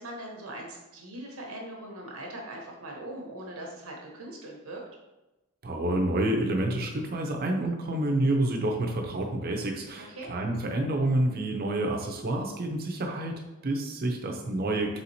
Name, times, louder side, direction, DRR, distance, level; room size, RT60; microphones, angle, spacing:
voice 1, 0.0-4.8 10.1-10.3, right 1 dB, 85° right, 0 dB, 1.0 m, -41 dB
voice 2, 5.6-15.0, right 1 dB, 45° right, 2 dB, 0.6 m, -28 dB
4.2 x 3.7 x 2.7 m, 1.0 s
head